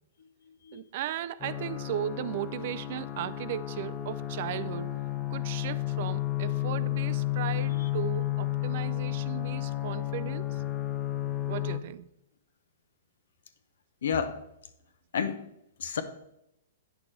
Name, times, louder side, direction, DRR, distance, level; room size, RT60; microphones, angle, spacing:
voice 1, 0.7-5.0 5.3-10.6 11.5-12.1, right 12 dB, 50° right, 0.3 m, -36 dB
sound 1, 1.4-11.8, left 15 dB, 25° left, 0.7 m, -32 dB
voice 2, 14.0-14.4 15.1-15.4 15.8-16.0, left 7 dB, 75° left, 0.8 m, -30 dB
8.7 x 6.0 x 3.3 m
hypercardioid pair, 145°, 0 cm